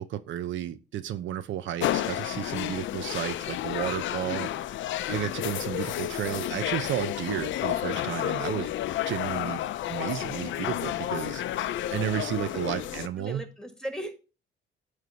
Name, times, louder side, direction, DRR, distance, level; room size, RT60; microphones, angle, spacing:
voice 1, 0.0-4.5 5.1-8.7 9.1-9.6 9.9-11.4 11.9-13.4, right 11 dB, 75° right, 0.6 m, -32 dB
sound 1, 1.8-13.1, left 13 dB, 75° left, 0.5 m, -31 dB
voice 2, 4.2-4.6 12.4-14.1, equal, 5° left, 1.8 m, -39 dB
9.1 x 3.3 x 5.6 m
cardioid pair, 90°, 20 cm